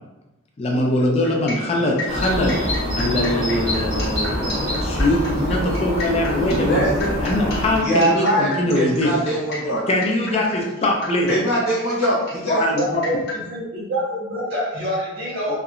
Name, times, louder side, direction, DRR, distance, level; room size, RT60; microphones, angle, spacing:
voice 1, 0.6-2.6 3.0-6.9 7.2-9.1 9.9-11.3 12.5-13.0 15.5-15.6, left 1 dB, 30° left, 0 dB, 0.3 m, -22 dB
sound 1, 1.2-13.4, left 2 dB, 50° left, 0.8 m, -33 dB
sound 2, 2.1-7.8, equal, 85° right, 1.0 m, -25 dB
voice 2, 6.5-7.1 7.8-9.8 11.3-12.6, equal, 80° left, -6 dB, 0.8 m, -22 dB
voice 3, 12.8-15.6, equal, 50° right, -7 dB, 0.5 m, -26 dB
2.8 x 2.1 x 2.4 m, 1.0 s
head